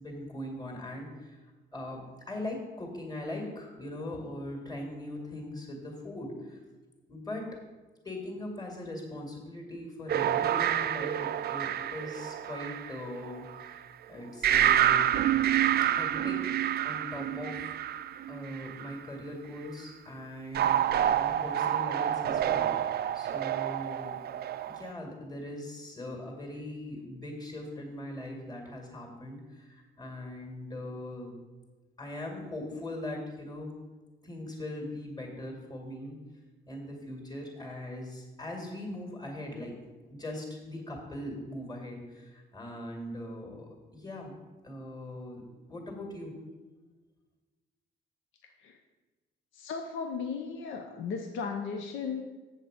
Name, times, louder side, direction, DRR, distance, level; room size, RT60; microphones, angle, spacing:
voice 1, 0.0-1.4 1.7-6.6 7.1-7.6 8.0-13.8 14.1-15.1 15.8-16.6 16.8-17.8 18.3-24.2 24.7-31.3 32.0-33.7 34.2-36.2 36.7-39.8 40.1-44.4 44.6-45.4 45.7-46.4, left 1 dB, 20° left, 1 dB, 2.2 m, -40 dB
sound 1, 10.1-13.7 14.4-18.9 20.5-24.9, right 11 dB, 55° right, 0.4 m, -28 dB
voice 2, 49.5-52.2, left 5 dB, 80° left, 4 dB, 0.8 m, -36 dB
7.4 x 7.3 x 5.1 m, 1.2 s
cardioid pair, 90°, 20 cm